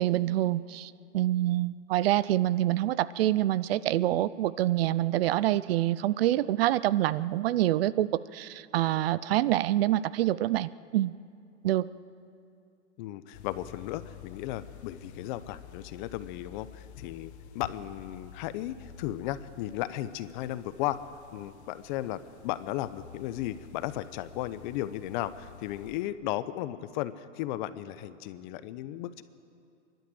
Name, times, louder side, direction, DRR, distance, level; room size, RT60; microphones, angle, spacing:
voice 1, 0.0-11.1 11.6-11.9, right 14 dB, 50° right, 18 dB, 0.6 m, -26 dB
voice 2, 13.0-21.0 21.3-29.2, left 14 dB, 40° left, 14 dB, 0.8 m, -35 dB
sound 1, 13.3-26.0, left 8 dB, 60° left, 1.6 m, -50 dB
28.0 x 12.0 x 7.8 m, 2.4 s
hypercardioid pair, 130°, 37 cm